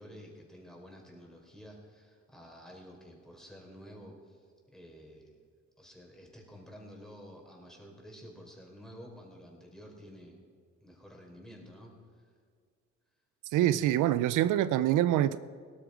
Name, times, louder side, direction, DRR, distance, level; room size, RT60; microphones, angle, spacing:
voice 1, 0.0-4.5 4.7-5.3 5.8-10.4 10.8-11.9, equal, ahead, 4.3 m, -51 dB
voice 2, 13.5-15.4, right 13 dB, 85° right, 0.5 m, -25 dB
17.5 x 13.0 x 5.0 m
cardioid pair, 90°, 30 cm